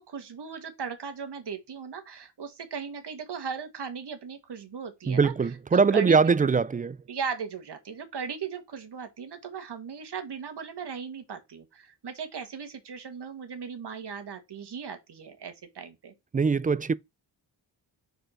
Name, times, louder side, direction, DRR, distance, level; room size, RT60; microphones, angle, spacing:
voice 1, 0.0-5.3 5.7-6.2 6.4-6.5 7.1-16.1, right 6 dB, 60° right, 1.8 m, -37 dB
voice 2, 5.1-7.0 16.3-16.9, right 5 dB, 20° right, 0.3 m, -22 dB
5.3 x 4.3 x 5.7 m
cardioid pair, 80°, 46 cm